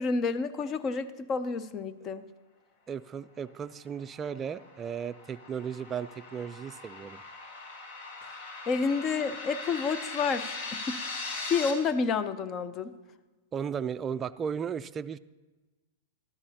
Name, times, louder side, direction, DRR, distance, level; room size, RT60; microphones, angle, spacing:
voice 1, 0.0-2.2 8.7-11.0 11.4-12.9, left 5 dB, 30° left, 13 dB, 0.5 m, -29 dB
voice 2, 2.9-7.2 13.5-15.2, right 7 dB, 25° right, 12 dB, 0.3 m, -35 dB
sound 1, 4.0-11.7, left 3 dB, 55° left, 1.7 m, -40 dB
12.5 x 12.5 x 2.9 m, 1.2 s
hypercardioid pair, 120°, 0 cm